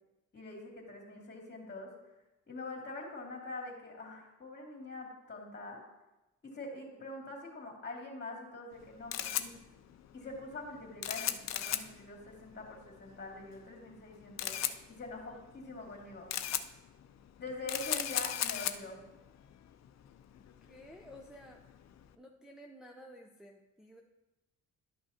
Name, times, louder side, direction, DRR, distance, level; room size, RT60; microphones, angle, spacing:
voice 1, 0.3-1.9 2.5-5.8 6.4-9.5 10.1-14.6 14.9-16.3 17.4-19.0, left 2 dB, 35° left, -1 dB, 2.4 m, -44 dB
Camera, 8.7-22.1, left 11 dB, 60° left, 0.6 m, -39 dB
voice 2, 15.1-15.4 20.6-21.6 22.2-24.0, equal, ahead, 0 dB, 0.6 m, -53 dB
11.5 x 6.1 x 2.8 m, 0.99 s
cardioid pair, 90°, 30 cm